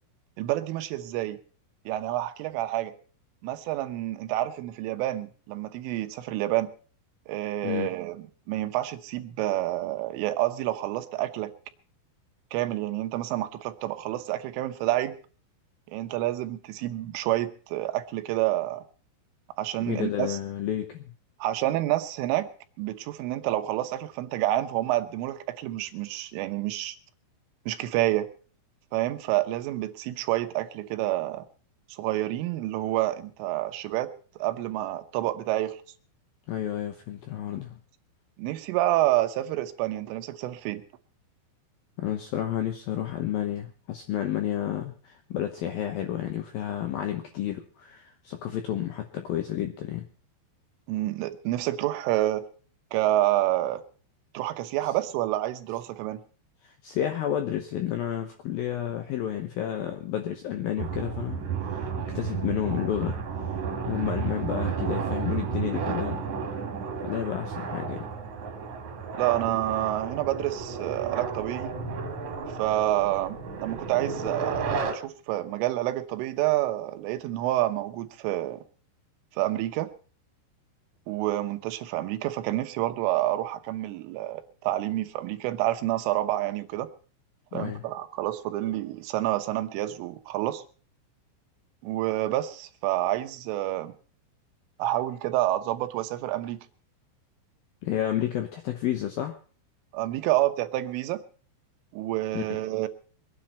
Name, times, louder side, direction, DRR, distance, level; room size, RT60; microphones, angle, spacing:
voice 1, 0.4-1.4 1.9-2.9 3.4-6.7 7.3-11.5 12.5-15.2 15.9-18.8 19.6-20.4 21.4-22.5 22.8-27.0 27.7-28.3 28.9-31.5 31.9-35.8 38.4-40.8 50.9-52.5 52.9-53.8 54.4-56.2 69.1-71.7 72.6-78.6 79.3-79.9 81.1-86.9 87.5-90.6 91.8-93.9 94.8-96.6 99.9-101.2 101.9-102.9, right 15 dB, 85° right, 9 dB, 3.5 m, -28 dB
voice 2, 19.9-21.1 36.5-37.8 42.0-50.1 56.6-61.9 62.1-63.6 63.9-66.2 67.0-68.1 87.5-87.9 97.8-99.4 102.3-102.4, left 11 dB, 75° left, 6 dB, 2.1 m, -31 dB
sound 1, 60.8-74.9, right 5 dB, 50° right, 2.7 m, -32 dB
24.0 x 9.9 x 4.3 m, 0.40 s
omnidirectional pair, 5.6 m